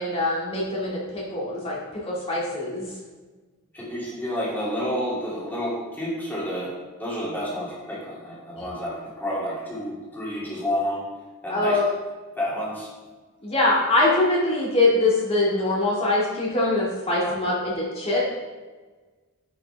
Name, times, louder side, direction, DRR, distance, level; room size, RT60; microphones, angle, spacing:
voice 1, 0.0-2.9 11.5-11.9 13.4-18.3, left 2 dB, 25° left, -5 dB, 2.2 m, -23 dB
voice 2, 3.7-6.7 7.0-11.1 11.4-11.8 12.4-12.9 17.2-17.3, equal, 10° left, -7 dB, 2.7 m, -30 dB
10.5 x 6.0 x 3.4 m, 1.3 s
head